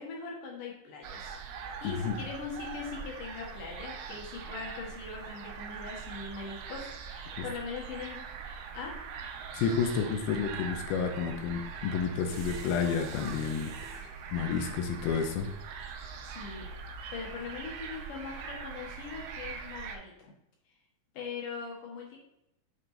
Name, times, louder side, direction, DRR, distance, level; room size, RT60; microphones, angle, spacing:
voice 1, 0.0-1.4 1.8-8.2 8.7-8.9 16.2-16.7 17.1-20.1 21.1-22.2, left 5 dB, 65° left, -1 dB, 2.8 m, -41 dB
sound 1, 1.0-20.0, right 6 dB, 85° right, 2.7 m, -42 dB
voice 2, 1.8-2.2 7.4-7.5 9.5-15.5 16.0-16.1, left 6 dB, 80° left, 5 dB, 2.6 m, -31 dB
sound 2, 12.3-14.1, right 3 dB, 60° right, 2.4 m, -51 dB
8.3 x 3.7 x 3.9 m, 0.82 s
omnidirectional pair, 4.4 m